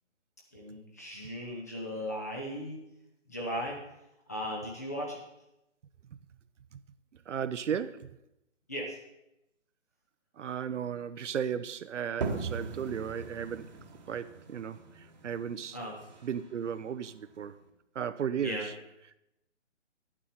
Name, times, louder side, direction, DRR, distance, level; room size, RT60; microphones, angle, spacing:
voice 1, 0.5-2.8 3.3-3.8 4.3-5.2 8.7-9.0 15.7-16.0 18.4-18.6, equal, 15° left, 0.7 m, -37 dB
voice 2, 7.3-8.1 10.4-13.7 14.1-15.8 16.2-17.6 17.9-18.7, right 8 dB, 65° right, 0.6 m, -35 dB
sound 1, 12.2-17.7, right 4 dB, 35° right, 1.2 m, -40 dB
11.0 x 8.8 x 4.2 m
hypercardioid pair, 165°, 38 cm